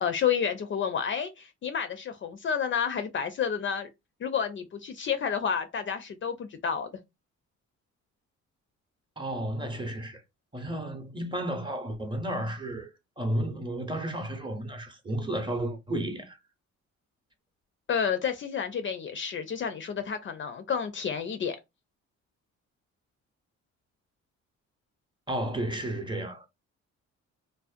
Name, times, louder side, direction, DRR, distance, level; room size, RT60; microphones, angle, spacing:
voice 1, 0.0-3.9 4.2-6.9 17.9-21.6, left 7 dB, 40° left, 0.4 m, -30 dB
voice 2, 9.2-10.2 10.5-16.4 25.3-26.5, right 1 dB, 15° right, 0.7 m, -32 dB
2.5 x 2.1 x 2.4 m
cardioid pair, 90°, 30 cm